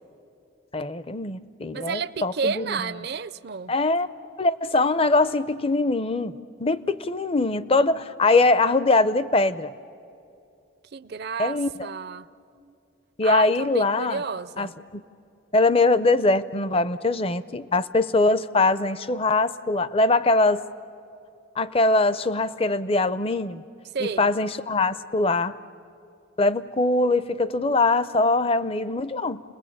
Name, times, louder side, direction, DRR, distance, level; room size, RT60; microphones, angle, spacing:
voice 1, 0.7-2.9 3.7-4.1 4.4-6.3 6.6-9.7 11.4-11.9 13.2-14.2 14.6-15.0 15.5-20.6 21.6-23.6 24.0-25.5 26.4-29.4, left 2 dB, 30° left, 15 dB, 0.5 m, -22 dB
voice 2, 1.7-3.7 10.9-12.3 13.2-14.7 23.9-24.3, right 5 dB, 50° right, 16 dB, 0.5 m, -31 dB
30.0 x 20.5 x 8.6 m, 2.6 s
head